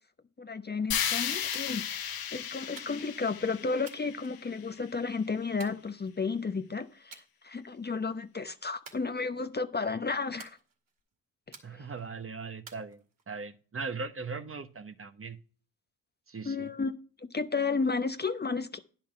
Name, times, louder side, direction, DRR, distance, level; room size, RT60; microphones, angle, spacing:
voice 1, 0.4-10.6 16.4-16.9 17.3-18.8, left 4 dB, 25° left, 0.8 m, -32 dB
sound 1, 0.9-5.0, left 9 dB, 55° left, 1.2 m, -35 dB
sound 2, 1.5-1.9 2.8-3.2 3.8-4.8 5.6-6.4 7.1-7.3 7.7-8.1 8.8-9.6 10.4-11.0 11.5-12.1 12.7-13.5, right 5 dB, 50° right, 2.2 m, -52 dB
voice 2, 11.6-15.4 16.3-16.7, right 4 dB, 30° right, 1.1 m, -39 dB
10.0 x 5.9 x 5.6 m
hypercardioid pair, 50°, 43 cm